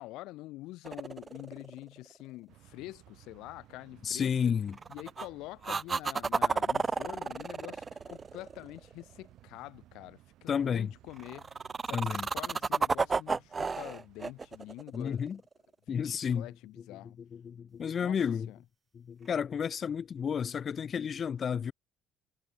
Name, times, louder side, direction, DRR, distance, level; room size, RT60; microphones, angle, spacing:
voice 1, 0.0-4.5 4.9-11.5 11.8-15.3 15.9-17.2 18.0-18.2 18.5-18.6, left 18 dB, 80° left, 2.0 m, -46 dB
sound 1, 0.8-2.1 4.7-5.3 5.6-8.9 11.2-15.5 19.3-19.4, right 4 dB, 25° right, 2.0 m, -32 dB
sound 2, 2.5-14.8, right 15 dB, 70° right, 6.7 m, -59 dB
voice 2, 4.0-4.7 10.5-10.9 11.9-12.3 14.9-15.4 15.9-16.5 17.3-18.5 19.1-21.7, left 7 dB, 40° left, 1.5 m, -31 dB
cardioid pair, 95°, 0 cm